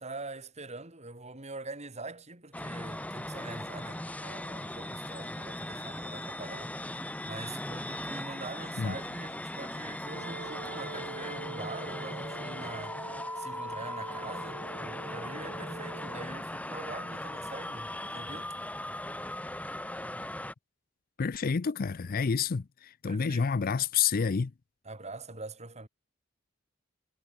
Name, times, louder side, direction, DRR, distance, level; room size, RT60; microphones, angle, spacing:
voice 1, 0.0-18.5 23.1-23.5 24.8-25.9, right 3 dB, 35° right, 3.9 m, -44 dB
sound 1, 2.5-20.5, left 1 dB, 5° left, 1.5 m, -39 dB
Wind instrument woodwind instrument, 10.0-16.3, right 4 dB, 55° right, 0.8 m, -44 dB
voice 2, 21.2-24.5, left 6 dB, 45° left, 0.5 m, -29 dB
head